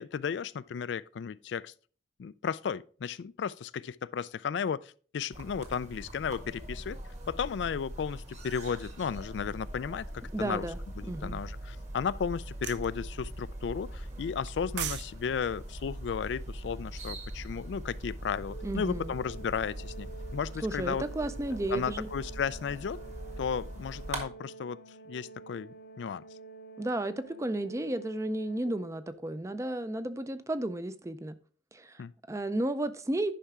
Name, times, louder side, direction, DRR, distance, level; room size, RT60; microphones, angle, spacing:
voice 1, 0.0-1.7 2.2-7.0 7.3-10.7 11.0-20.1 20.3-21.0 21.7-23.0 23.4-24.8 25.1-26.2 32.0-32.1, left 6 dB, 80° left, 0.4 m, -34 dB
sound 1, 5.3-24.2, right 1 dB, 40° right, 1.7 m, -42 dB
voice 2, 10.3-10.8 11.1-11.4 18.6-19.2 20.6-22.1 26.8-31.3 31.7-33.3, right 1 dB, 15° right, 0.5 m, -33 dB
sound 2, 12.6-12.9 14.5-15.1 15.4-15.6, right 11 dB, 75° right, 0.5 m, -35 dB
Organ, 18.5-29.4, right 4 dB, 55° left, 0.8 m, -49 dB
10.0 x 5.6 x 3.6 m
head